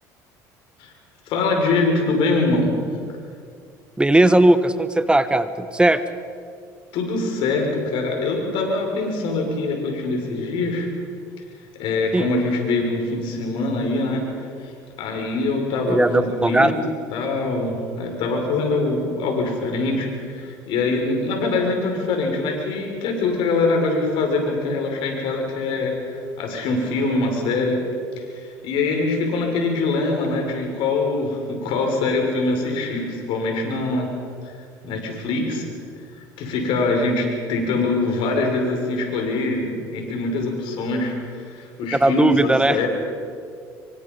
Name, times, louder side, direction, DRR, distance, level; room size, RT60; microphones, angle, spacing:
voice 1, 1.2-2.7 6.9-10.9 11.8-14.3 14.6-14.7 15.0-16.8 17.1-27.8 28.2-34.1 34.4-34.5 34.8-35.7 36.4-42.9, left 3 dB, 70° left, 2 dB, 6.3 m, -23 dB
voice 2, 4.0-6.0 12.1-12.3 15.9-16.8 42.0-42.9, right 1 dB, 10° right, 12 dB, 1.3 m, -17 dB
25.5 x 24.0 x 5.6 m, 2.2 s
supercardioid pair, 80°, 9 cm